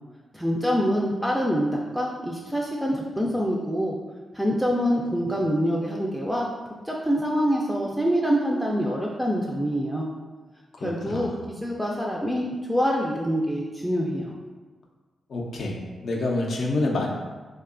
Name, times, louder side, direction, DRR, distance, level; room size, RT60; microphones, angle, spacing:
voice 1, 0.3-4.0 4.3-6.5 6.8-10.1 10.8-11.3 11.6-14.3, equal, 5° right, -2 dB, 0.3 m, -25 dB
voice 2, 10.8-11.4 15.3-15.8 16.0-17.1, left 2 dB, 70° left, 0 dB, 0.4 m, -27 dB
2.7 x 2.2 x 2.4 m, 1.3 s
cardioid pair, 55°, 0 cm